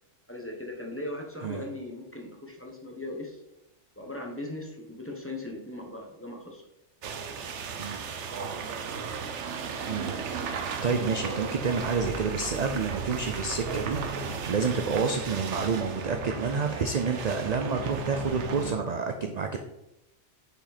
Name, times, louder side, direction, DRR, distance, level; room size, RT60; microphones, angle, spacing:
voice 1, 0.3-3.4 4.0-6.6, left 1 dB, 10° left, 0 dB, 1.0 m, -38 dB
sound 1, 7.0-18.7, right 5 dB, 70° right, 1.0 m, -35 dB
voice 2, 10.8-19.6, right 5 dB, 50° right, 5 dB, 0.5 m, -29 dB
6.6 x 5.0 x 4.2 m, 0.87 s
omnidirectional pair, 1.3 m